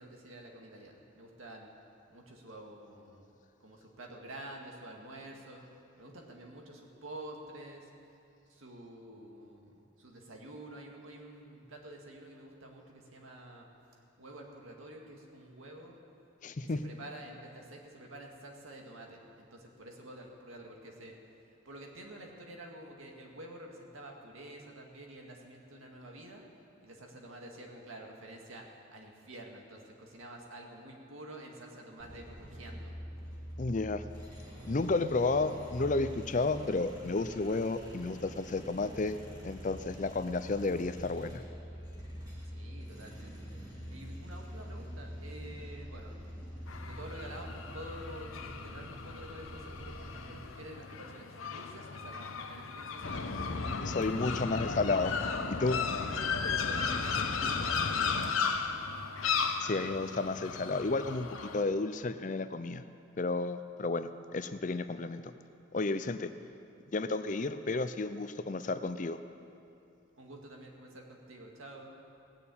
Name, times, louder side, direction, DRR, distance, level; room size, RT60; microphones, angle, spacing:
voice 1, 0.0-1.7 2.1-3.3 3.6-5.7 6.0-7.9 8.5-13.7 14.2-16.0 16.6-19.2 19.5-21.2 21.7-26.4 26.8-33.0 42.4-43.6 43.9-46.3 46.8-53.3 56.5-58.4 70.1-72.0, right 1 dB, 90° right, 1 dB, 2.0 m, -49 dB
voice 2, 16.4-16.8 33.6-34.0 34.7-39.2 39.4-41.4 53.8-55.2 55.5-55.8 59.6-62.8 63.2-65.2 65.7-66.3 66.9-69.2, left 3 dB, 40° left, 11 dB, 0.5 m, -32 dB
sound 1, 32.0-50.5, equal, 20° right, 2.3 m, -45 dB
sound 2, 46.7-61.6, left 6 dB, 85° left, 0.9 m, -36 dB
sound 3, 53.0-58.3, left 2 dB, 60° left, 0.8 m, -37 dB
18.0 x 7.0 x 8.6 m, 2.6 s
head